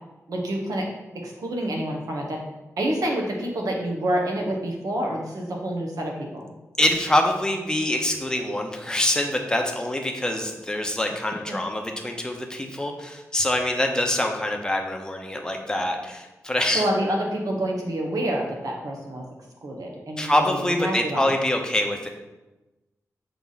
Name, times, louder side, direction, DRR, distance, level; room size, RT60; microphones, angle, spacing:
voice 1, 0.3-0.9 1.1-2.4 2.8-6.6 11.5-11.6 16.7-19.3 19.6-21.3, right 1 dB, 85° right, 0 dB, 1.2 m, -28 dB
voice 2, 6.8-16.9 20.2-22.1, left 1 dB, 15° left, 3 dB, 0.8 m, -25 dB
7.1 x 3.5 x 4.0 m, 1.1 s
wide cardioid pair, 110°, 6 cm